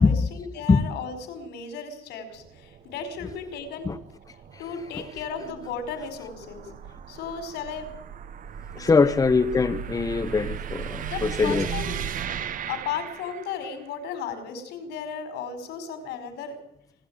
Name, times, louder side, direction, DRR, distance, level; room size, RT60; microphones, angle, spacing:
voice 1, 0.0-3.9 4.6-6.7 7.1-7.9 9.0-9.3 11.0-12.1 12.7-16.6, left 6 dB, 85° left, 4.9 m, -35 dB
sound 1, 2.4-13.8, right 8 dB, 55° right, 1.1 m, -37 dB
voice 2, 8.8-11.7, left 4 dB, 20° left, 0.9 m, -22 dB
27.0 x 13.0 x 8.9 m
cardioid pair, 110°, 17 cm